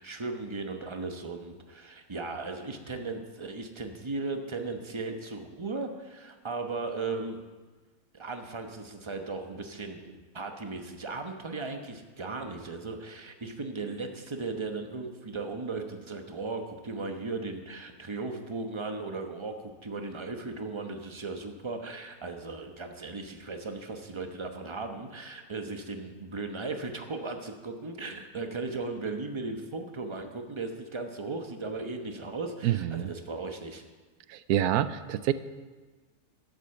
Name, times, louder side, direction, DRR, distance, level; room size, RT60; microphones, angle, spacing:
voice 1, 0.0-7.4 8.1-33.8, right 3 dB, 25° right, 5 dB, 0.8 m, -37 dB
voice 2, 32.6-33.1 34.3-35.3, right 11 dB, 85° right, 14 dB, 1.1 m, -27 dB
11.5 x 8.1 x 6.9 m, 1.3 s
omnidirectional pair, 1.6 m